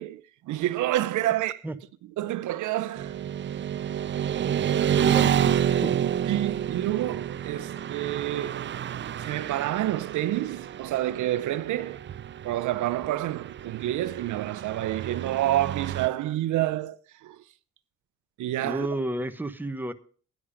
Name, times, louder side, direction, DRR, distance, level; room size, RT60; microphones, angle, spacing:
voice 1, 0.0-1.6 2.2-3.2 6.3-8.7 9.2-12.1 12.4-17.4 18.4-18.9, right 14 dB, 80° right, 0.7 m, -28 dB
Motorcycle / Traffic noise roadway noise, 3.0-16.1, right 9 dB, 40° right, 0.5 m, -29 dB
voice 2, 4.9-5.9 18.6-19.9, right 1 dB, 5° right, 1.1 m, -32 dB
11.0 x 10.0 x 5.1 m
cardioid pair, 90°, 30 cm